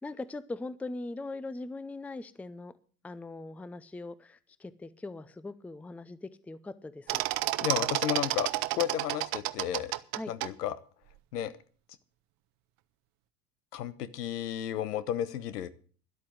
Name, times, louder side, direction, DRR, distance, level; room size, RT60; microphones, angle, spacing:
voice 1, 0.0-2.7 3.0-7.2 10.1-10.3, left 2 dB, 5° left, 16 dB, 0.5 m, -41 dB
sound 1, 7.1-10.5, right 19 dB, 45° right, 0.8 m, -30 dB
voice 2, 7.6-9.9 10.3-10.8 11.3-11.5 13.7-15.7, left 11 dB, 75° left, 15 dB, 1.1 m, -33 dB
11.5 x 8.4 x 7.8 m, 0.43 s
hypercardioid pair, 80°, 48 cm